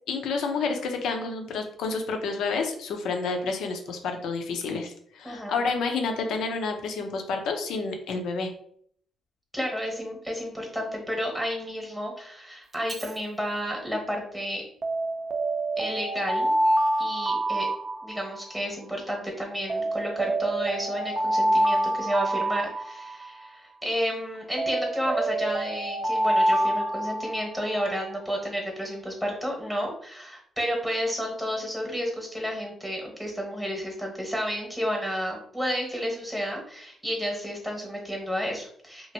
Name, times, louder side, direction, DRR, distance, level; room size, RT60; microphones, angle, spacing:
voice 1, 0.1-8.5, left 4 dB, 80° left, 4 dB, 0.6 m, -29 dB
voice 2, 5.2-5.6 9.5-14.6 15.8-16.5 17.0-17.7 18.0-39.1, equal, ahead, 0 dB, 1.0 m, -31 dB
Alarm, 12.7-13.1 14.8-18.6 19.7-23.5 24.6-27.8, right 1 dB, 35° right, 0.4 m, -26 dB
3.0 x 2.5 x 2.6 m, 0.62 s
cardioid pair, 90°, 0 cm